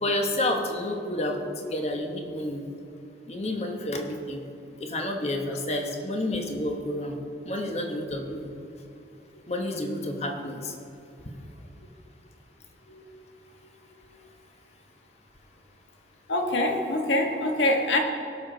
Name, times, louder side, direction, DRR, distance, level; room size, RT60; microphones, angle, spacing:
voice 1, 0.0-2.6 3.3-4.4 4.8-7.2 7.4-8.5 9.5-10.8, left 1 dB, 35° left, 2 dB, 1.1 m, -30 dB
voice 2, 12.9-13.2 16.3-18.0, left 1 dB, 85° left, 2 dB, 1.4 m, -25 dB
17.5 x 6.5 x 3.9 m, 2.9 s
head